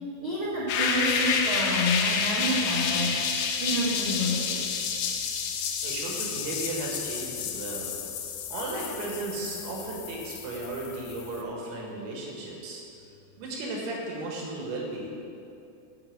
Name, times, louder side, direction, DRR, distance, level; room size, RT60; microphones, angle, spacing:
voice 1, 0.2-3.2 3.6-4.8, equal, 55° right, -10 dB, 1.4 m, -29 dB
sound 1, 0.7-11.4, left 6 dB, 90° left, 2.2 m, -30 dB
voice 2, 5.8-7.9 8.5-12.8 13.4-15.2, right 2 dB, 75° right, -2 dB, 3.8 m, -35 dB
8.6 x 6.9 x 7.5 m, 2.7 s
omnidirectional pair, 5.5 m